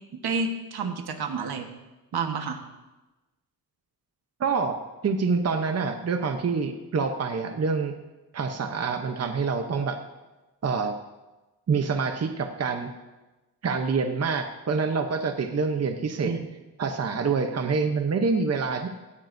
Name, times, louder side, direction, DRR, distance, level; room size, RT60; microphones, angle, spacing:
voice 1, 0.2-1.7 2.1-2.6 14.3-14.4 16.2-16.5, right 4 dB, 80° right, 5 dB, 1.4 m, -29 dB
voice 2, 4.4-4.8 5.0-7.9 8.3-10.0 10.6-11.0 11.7-12.9 13.6-16.4 16.8-18.9, right 5 dB, 40° right, 5 dB, 0.8 m, -26 dB
17.5 x 13.5 x 2.7 m, 1.1 s
wide cardioid pair, 160°, 38 cm